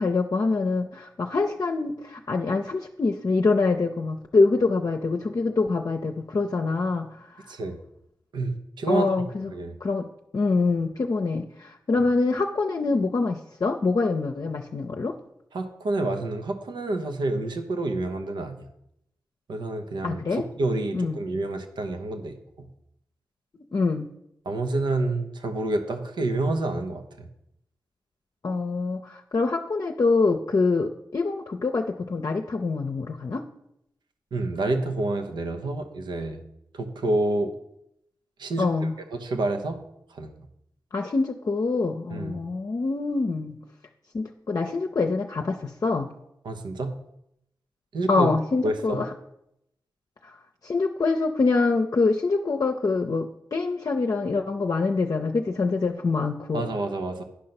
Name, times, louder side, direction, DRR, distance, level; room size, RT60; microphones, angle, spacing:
voice 1, 0.0-7.2 8.9-9.5 9.8-10.1 10.3-15.2 20.0-20.4 20.9-21.2 23.5-24.1 28.4-33.5 38.6-38.9 40.9-43.6 44.1-46.1 48.1-49.1 50.2-50.3 50.6-56.7, left 3 dB, 50° left, 3 dB, 0.7 m, -25 dB
voice 2, 8.3-9.1 9.5-9.8 15.5-18.6 19.5-22.7 24.4-27.3 34.3-36.4 36.7-37.5 38.4-38.7 39.1-39.8 40.1-40.3 42.1-42.3 46.4-47.0 47.9-48.3 48.6-49.0 56.5-57.2, right 2 dB, 90° right, 6 dB, 1.0 m, -28 dB
10.0 x 5.3 x 6.0 m, 0.80 s
cardioid pair, 50°, 8 cm